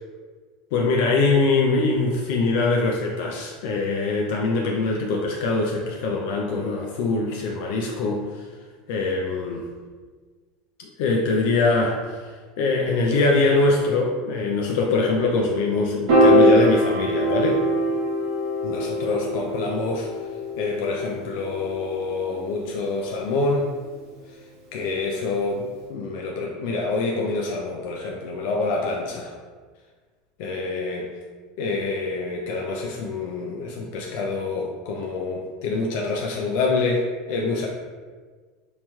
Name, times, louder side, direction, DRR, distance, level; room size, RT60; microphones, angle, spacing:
voice 1, 0.7-8.5 8.9-9.7 10.8-12.3 12.6-17.6 18.6-20.1 20.6-23.7 24.7-29.3 30.4-31.1 31.6-37.7, left 3 dB, 70° left, -1 dB, 0.3 m, -24 dB
Piano, 16.1-22.5, equal, 65° right, 0.9 m, -22 dB
2.9 x 2.9 x 2.2 m, 1.5 s
hypercardioid pair, 90°, 0 cm